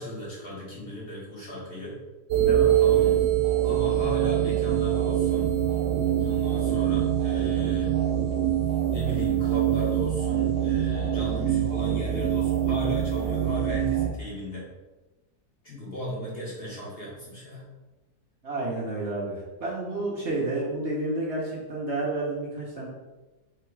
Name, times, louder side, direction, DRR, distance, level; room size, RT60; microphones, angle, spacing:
voice 1, 0.0-2.0 2.8-3.2 3.6-5.5 6.2-7.9 8.8-14.7 15.6-17.7, equal, 40° left, -5 dB, 1.1 m, -36 dB
sound 1, 2.3-14.1, right 10 dB, 80° right, 0.6 m, -24 dB
voice 2, 2.4-2.7 18.4-22.9, right 2 dB, 50° right, -4 dB, 1.0 m, -30 dB
3.8 x 2.9 x 4.5 m, 1.1 s
omnidirectional pair, 1.7 m